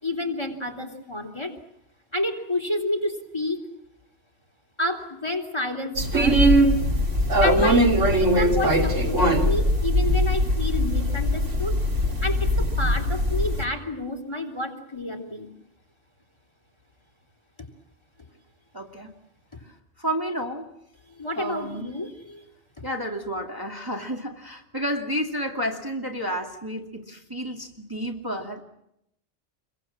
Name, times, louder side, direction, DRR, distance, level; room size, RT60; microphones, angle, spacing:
voice 1, 0.0-1.5 2.1-3.6 4.8-6.4 7.4-11.8 12.2-15.5 19.5-19.6 21.1-22.5, left 1 dB, 20° left, 6 dB, 3.3 m, -29 dB
sound 1, 6.0-13.6, equal, 90° right, 3.1 m, -21 dB
voice 2, 18.7-19.1 19.6-20.7 21.4-21.9 22.8-28.6, equal, 15° right, 1 dB, 2.4 m, -31 dB
28.5 x 23.0 x 7.6 m, 0.80 s
omnidirectional pair, 1.2 m